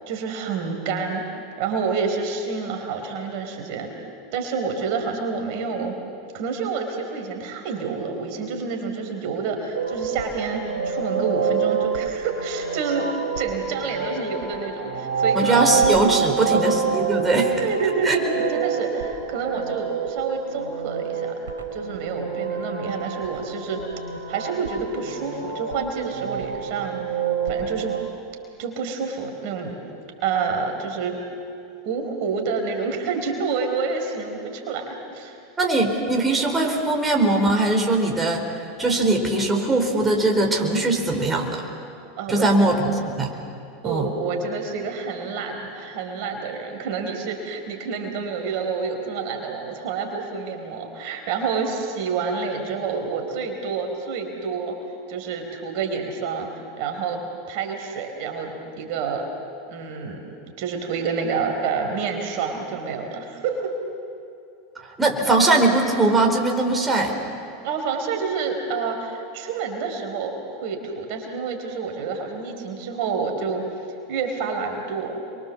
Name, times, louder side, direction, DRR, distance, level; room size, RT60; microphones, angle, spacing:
voice 1, 0.1-1.2 1.6-3.9 4.3-6.0 6.3-13.1 13.4-15.6 16.2-16.6 17.6-21.3 21.7-23.8 24.3-27.0 27.4-28.0 28.6-29.8 30.2-31.2 31.8-35.4 42.2-42.6 43.3-43.4 43.8-54.8 55.1-56.5 56.8-57.2 57.5-59.3 59.7-60.2 60.6-63.7 67.6-73.6 74.1-75.2, right 5 dB, 55° right, 3 dB, 4.3 m, -28 dB
sound 1, 9.7-28.0, right 6 dB, 75° right, 3.7 m, -27 dB
voice 2, 15.3-17.6 18.0-18.2 35.6-38.4 38.8-41.6 42.3-43.3 43.8-44.1 65.0-67.2, right 2 dB, 15° right, 1 dB, 4.6 m, -20 dB
29.5 x 23.5 x 7.4 m, 2.5 s
hypercardioid pair, 85°, 0 cm